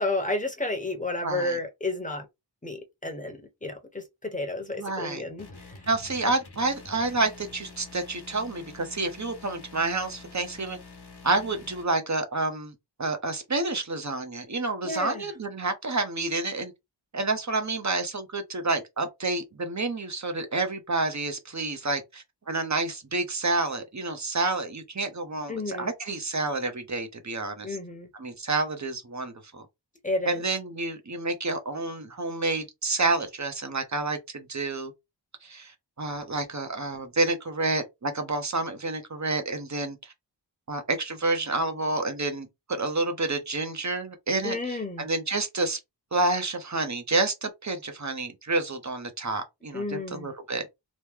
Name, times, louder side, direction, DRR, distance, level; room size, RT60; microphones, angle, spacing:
voice 1, 0.0-2.3 2.6-5.7 14.8-15.2 25.5-25.9 27.6-28.1 30.0-30.4 44.4-45.1 49.7-50.3, left 2 dB, 15° left, 1.0 m, -31 dB
voice 2, 1.2-1.6 4.8-5.2 5.9-10.8 11.2-12.7 13.0-16.7 17.1-27.8 28.2-29.6 30.3-34.9 35.4-40.1 40.7-45.8 46.1-50.6, right 3 dB, 40° right, 0.8 m, -29 dB
sound 1, 5.4-11.8, left 4 dB, 60° left, 1.1 m, -47 dB
3.0 x 2.1 x 3.5 m
wide cardioid pair, 60°, 45 cm